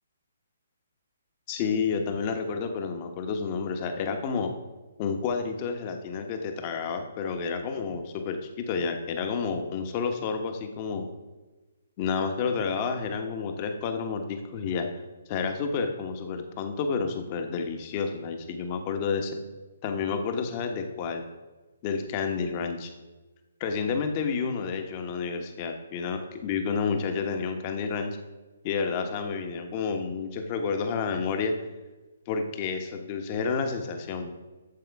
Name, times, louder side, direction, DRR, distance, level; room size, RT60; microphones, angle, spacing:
voice 1, 1.5-4.5 5.0-11.1 12.0-14.9 15.3-19.4 19.8-21.2 21.8-22.9 23.6-28.2 28.6-31.5 32.3-34.3, left 5 dB, 35° left, 5 dB, 1.2 m, -30 dB
11.5 x 7.7 x 3.6 m, 1.2 s
figure-of-eight pair, 135°, 0 cm